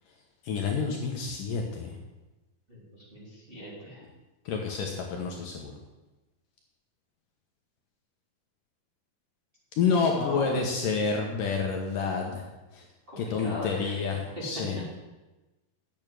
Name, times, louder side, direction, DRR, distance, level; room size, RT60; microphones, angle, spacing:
voice 1, 0.4-1.9 4.5-5.7 9.8-12.4 12.7-12.8 13.2-14.8, left 5 dB, 65° left, 1 dB, 2.5 m, -29 dB
voice 2, 2.7-4.0 10.1-10.6 13.1-14.0 14.4-14.5 14.7-14.8, left 1 dB, 15° right, -6 dB, 2.8 m, -39 dB
8.9 x 7.5 x 9.1 m, 1.1 s
omnidirectional pair, 4.5 m